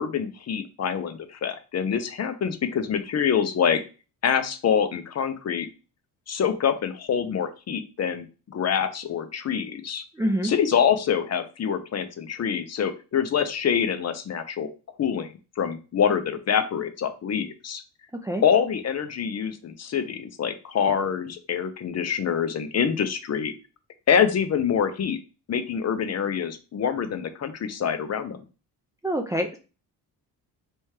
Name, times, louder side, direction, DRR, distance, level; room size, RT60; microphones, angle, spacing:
voice 1, 0.0-3.8 4.2-5.7 6.3-10.0 10.4-14.7 15.0-15.3 15.6-17.8 18.4-23.5 24.1-25.2 25.5-28.4, left 7 dB, 40° left, 9 dB, 0.6 m, -25 dB
voice 2, 10.2-10.5 18.2-18.4 29.0-29.6, equal, 10° right, 4 dB, 0.4 m, -26 dB
3.3 x 3.1 x 4.7 m, 0.33 s
cardioid pair, 130°, 40 cm